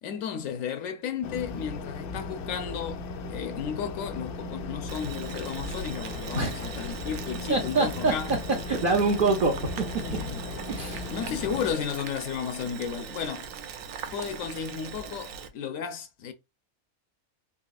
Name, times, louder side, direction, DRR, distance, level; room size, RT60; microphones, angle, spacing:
voice 1, 0.0-8.3 10.1-10.4 11.1-13.5 14.1-16.3, left 7 dB, 70° left, 0.9 m, -33 dB
sound 1, 1.2-11.7, left 3 dB, 90° left, 1.1 m, -37 dB
Boiling, 4.9-15.5, right 6 dB, 70° right, 0.9 m, -40 dB
voice 2, 6.3-6.9 7.5-8.1 8.7-9.5 10.7-11.1, right 3 dB, 50° right, 0.6 m, -25 dB
4.0 x 2.8 x 2.3 m
omnidirectional pair, 1.6 m